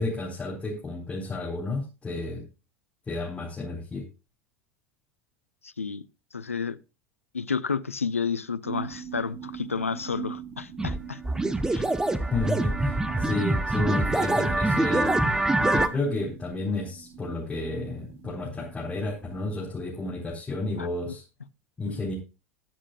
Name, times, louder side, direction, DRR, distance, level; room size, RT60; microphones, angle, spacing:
voice 1, 0.0-2.5 3.1-4.0 12.2-15.3 15.6-21.2 21.8-22.1, left 2 dB, 15° left, 4.1 m, -31 dB
voice 2, 5.6-6.1 6.3-6.8 7.3-11.2 11.7-11.8 20.8-21.1 21.9-22.0, left 5 dB, 80° left, 0.6 m, -31 dB
sound 1, 8.6-19.6, right 8 dB, 45° right, 2.4 m, -43 dB
sound 2, 10.8-11.0 11.2-15.9, right 2 dB, 10° right, 1.0 m, -25 dB
21.5 x 7.3 x 2.4 m
figure-of-eight pair, 80°, 7 cm